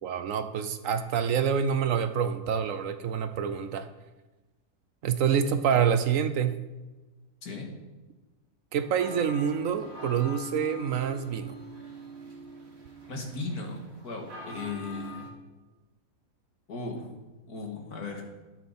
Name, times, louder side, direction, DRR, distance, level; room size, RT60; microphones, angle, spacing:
voice 1, 0.0-3.9 5.0-6.6 8.7-11.6, right 7 dB, 65° right, 11 dB, 1.0 m, -27 dB
sound 1, 8.8-15.3, right 1 dB, 45° right, 2.0 m, -44 dB
voice 2, 13.1-15.3 16.7-17.1 17.5-18.2, left 3 dB, 80° left, 2 dB, 2.4 m, -37 dB
13.0 x 10.5 x 4.2 m, 1.2 s
omnidirectional pair, 1.6 m